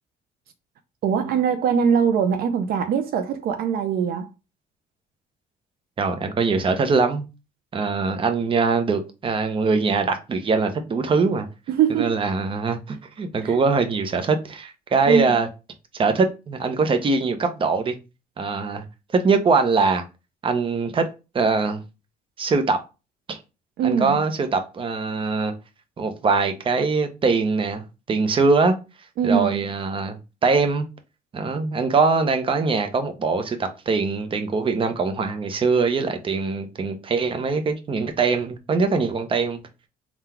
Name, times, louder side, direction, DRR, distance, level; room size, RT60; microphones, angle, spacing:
voice 1, 1.0-4.3 11.7-12.2 13.4-13.6 15.1-15.4 23.8-24.2 29.2-29.6, right 7 dB, 65° right, 0.5 m, -22 dB
voice 2, 6.0-7.3 7.7-11.5 11.9-15.5 15.9-18.0 18.4-18.8 19.1-20.0 20.4-21.1 21.3-21.8 22.4-22.8 23.3-23.4 23.8-25.5 26.0-27.8 28.1-28.7 29.2-30.2 30.4-30.9 31.3-39.6, right 4 dB, 30° right, 0.7 m, -22 dB
3.8 x 2.3 x 4.3 m
cardioid pair, 110°, 17 cm